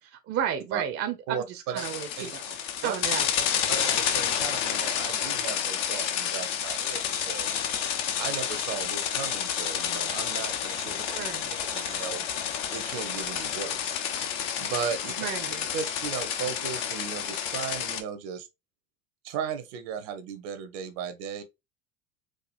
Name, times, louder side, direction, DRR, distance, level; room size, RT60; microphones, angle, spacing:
voice 1, 0.0-2.6 2.8-3.7 11.1-11.8 15.2-15.7, right 9 dB, 35° right, 0.7 m, -33 dB
voice 2, 1.3-1.9 2.2-2.3 2.8-2.9 3.7-7.5 8.2-11.0 11.7-12.3 12.7-15.1 15.7-18.5 19.2-21.4, right 7 dB, 55° right, 1.0 m, -36 dB
sound 1, 1.8-18.0, left 9 dB, 60° left, 0.9 m, -30 dB
4.8 x 2.4 x 2.4 m
hypercardioid pair, 85°, 41 cm